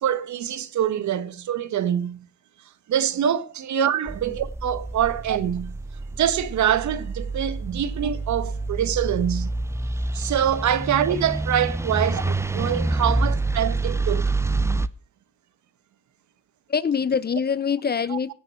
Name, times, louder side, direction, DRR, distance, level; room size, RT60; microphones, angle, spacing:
voice 1, 0.0-2.2 2.9-5.8 6.2-9.5 10.1-14.3 18.1-18.2, right 10 dB, 70° right, 1.4 m, -25 dB
sound 1, 4.1-14.9, right 2 dB, 10° right, 0.7 m, -27 dB
voice 2, 16.7-18.3, left 6 dB, 35° left, 0.9 m, -24 dB
17.0 x 6.4 x 7.6 m
cardioid pair, 90°, 30 cm